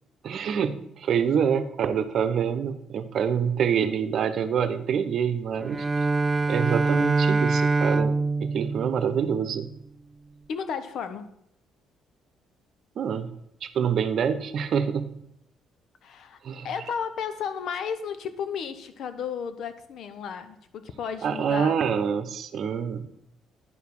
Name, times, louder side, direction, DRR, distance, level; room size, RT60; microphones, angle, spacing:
voice 1, 0.2-6.1 6.5-9.7 13.0-13.3 13.6-15.0 16.4-16.7 21.2-23.1, right 7 dB, 60° right, 9 dB, 0.8 m, -26 dB
Bowed string instrument, 5.6-9.7, right 3 dB, 20° right, 0.4 m, -25 dB
voice 2, 10.5-11.3 16.0-16.4 16.6-21.7, left 7 dB, 65° left, 11 dB, 0.9 m, -33 dB
10.0 x 4.8 x 5.4 m, 0.76 s
cardioid pair, 100°, 0 cm